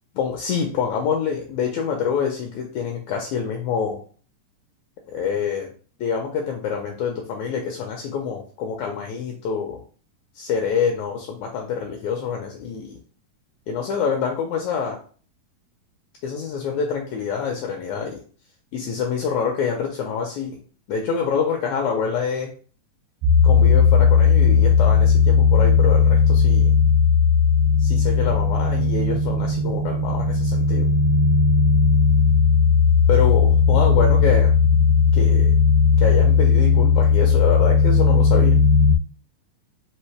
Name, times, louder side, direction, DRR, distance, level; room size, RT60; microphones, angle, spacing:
voice 1, 0.1-4.0 5.1-5.7 6.0-9.8 10.3-13.0 13.7-15.0 16.2-18.2 18.7-20.6 20.9-22.5 23.4-26.7 27.8-30.9 33.1-34.5 35.1-35.5 36.0-38.6, left 6 dB, 85° left, 2 dB, 1.7 m, -26 dB
sound 1, 23.2-39.0, left 5 dB, 80° right, 2.5 m, -16 dB
5.5 x 2.8 x 3.2 m, 0.41 s
omnidirectional pair, 3.9 m